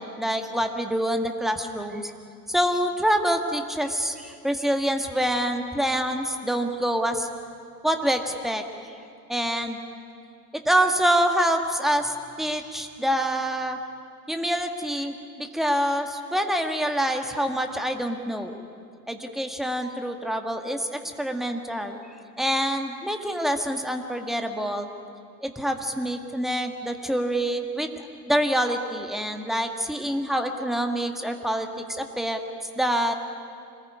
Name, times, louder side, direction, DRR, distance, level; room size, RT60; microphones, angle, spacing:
voice 1, 0.0-2.1 2.5-7.3 7.8-8.6 9.3-9.8 10.5-13.8 14.3-18.6 19.1-22.0 22.4-24.9 25.4-32.4 32.8-33.1, equal, ahead, 5 dB, 2.0 m, -26 dB
25.5 x 20.5 x 9.6 m, 2.3 s
figure-of-eight pair, 85°, 49 cm